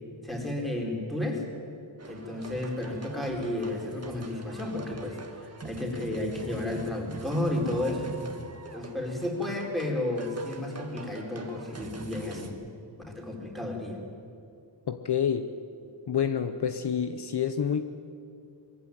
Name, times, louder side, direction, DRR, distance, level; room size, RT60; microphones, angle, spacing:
voice 1, 0.2-1.4 2.1-8.1 8.7-12.6 13.0-14.0, left 1 dB, ahead, -1 dB, 4.3 m, -32 dB
sound 1, 2.0-12.5, right 3 dB, 30° right, 1.8 m, -44 dB
voice 2, 14.9-15.5 16.1-17.8, left 8 dB, 55° left, 9 dB, 0.9 m, -28 dB
22.0 x 15.0 x 9.4 m, 2.4 s
wide cardioid pair, 105°, 47 cm